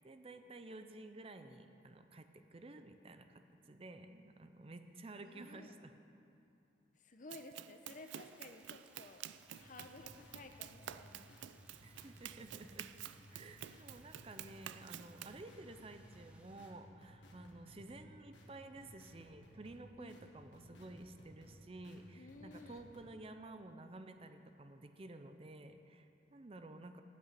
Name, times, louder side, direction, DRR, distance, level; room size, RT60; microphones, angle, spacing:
voice 1, 0.0-5.9 11.8-12.9 13.3-27.0, right 2 dB, 30° right, 8 dB, 0.5 m, -53 dB
voice 2, 5.1-5.7 7.0-9.2 9.6-11.3 20.0-20.2 22.1-22.8, left 2 dB, 45° left, 6 dB, 0.8 m, -55 dB
Run, 7.3-15.4, right 11 dB, 85° right, 0.4 m, -51 dB
sound 1, 7.9-16.7, right 1 dB, 5° right, 1.0 m, -69 dB
sound 2, 9.4-23.0, equal, 85° left, 1.6 m, -60 dB
9.3 x 8.5 x 9.1 m, 2.7 s
head